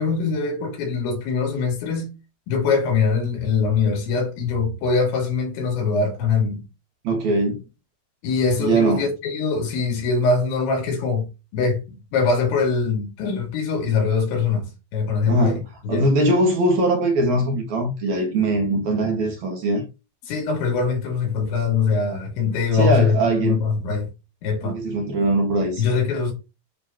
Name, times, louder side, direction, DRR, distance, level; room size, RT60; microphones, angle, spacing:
voice 1, 0.0-2.1 2.5-6.6 8.2-11.8 12.1-16.1 20.3-24.1 24.4-24.8 25.8-26.3, left 5 dB, 90° left, 5.1 m, -23 dB
voice 2, 7.0-7.6 8.6-9.0 15.3-15.6 15.9-19.8 22.7-23.6 24.6-25.9, right 1 dB, 60° right, 2.1 m, -21 dB
10.0 x 3.7 x 2.9 m
omnidirectional pair, 5.2 m